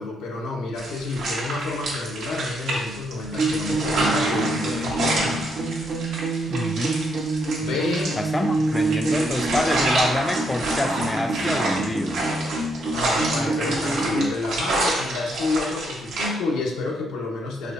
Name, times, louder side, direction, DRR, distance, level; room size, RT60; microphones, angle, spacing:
voice 1, 0.0-5.7 6.4-6.5 7.6-8.1 12.9-17.7, left 3 dB, 90° left, -1 dB, 0.7 m, -29 dB
sound 1, 0.8-16.3, right 2 dB, 85° right, 1.0 m, -28 dB
sound 2, 3.3-14.3, right 2 dB, 55° right, 0.7 m, -27 dB
voice 2, 6.5-7.0 8.2-12.2, left 1 dB, 15° left, 5 dB, 0.3 m, -27 dB
4.2 x 2.6 x 2.5 m, 0.88 s
cardioid pair, 90°, 0 cm